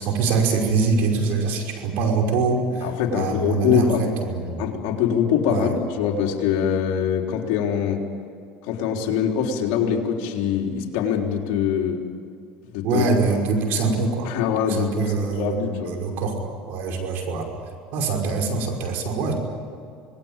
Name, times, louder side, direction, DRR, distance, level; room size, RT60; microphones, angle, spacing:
voice 1, 0.0-4.7 5.5-5.7 12.8-14.3 14.7-17.5 17.9-19.3, right 4 dB, 65° right, 3 dB, 5.7 m, -24 dB
voice 2, 2.8-4.0 4.6-8.0 8.6-12.0 12.7-13.0 14.2-15.9, left 8 dB, 75° left, 1 dB, 3.8 m, -23 dB
26.5 x 20.0 x 9.0 m, 2.4 s
supercardioid pair, 100°, 4 cm